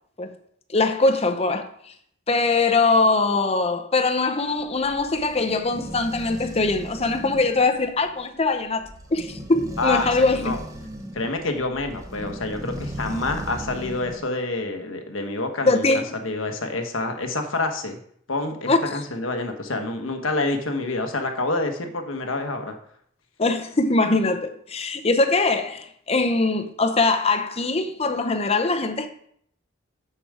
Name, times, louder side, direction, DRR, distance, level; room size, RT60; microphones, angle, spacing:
voice 1, 0.7-1.7 2.3-8.8 9.1-10.6 15.7-16.0 18.7-19.0 23.4-29.1, left 3 dB, 30° left, 0.7 m, -22 dB
sound 1, 4.6-14.3, right 1 dB, 15° right, 1.0 m, -37 dB
voice 2, 9.8-10.1 10.3-10.6 11.1-15.8 16.2-18.0 18.3-22.8, left 2 dB, 90° left, 1.2 m, -27 dB
7.1 x 6.9 x 4.9 m
head